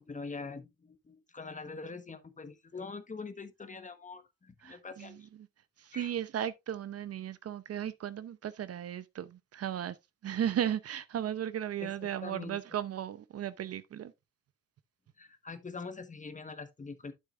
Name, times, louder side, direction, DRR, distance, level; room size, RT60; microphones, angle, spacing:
voice 1, 0.0-5.3 5.9-6.1 11.8-12.6 15.2-17.1, left 4 dB, 25° left, 1.2 m, -44 dB
voice 2, 4.6-5.2 5.8-10.0 10.2-14.1, right 10 dB, 50° right, 0.7 m, -35 dB
8.9 x 7.4 x 2.5 m
cardioid pair, 90°, 30 cm